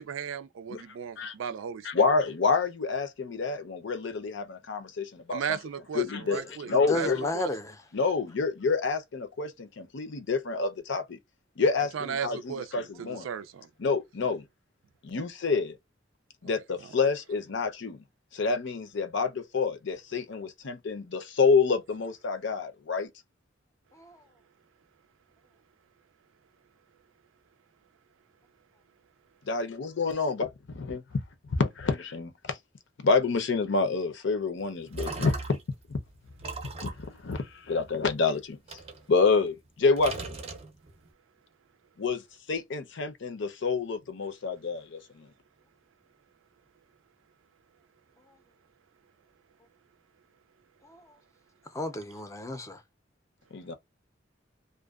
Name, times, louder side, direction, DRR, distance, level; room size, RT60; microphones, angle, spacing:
voice 1, 0.0-2.1 5.3-7.5 11.9-13.7, right 7 dB, 80° right, 0.4 m, -36 dB
voice 2, 1.8-5.4 5.9-6.4 6.7-7.3 7.9-11.2 11.6-13.3 13.8-14.5 15.0-15.8 16.4-18.0 18.3-23.1 29.5-31.0 31.5-32.6 33.0-35.4 35.9-36.0 36.8-38.8 39.1-40.4 42.0-42.2 42.5-45.3 53.5-53.8, left 4 dB, 65° left, 0.6 m, -28 dB
voice 3, 6.3-7.8 23.9-24.2 50.8-51.1 51.7-52.8, left 1 dB, 15° left, 0.5 m, -34 dB
sound 1, 34.6-35.8 36.4-38.1 38.7-39.7 40.0-41.1, right 3 dB, 30° right, 0.5 m, -39 dB
2.5 x 2.2 x 2.3 m
head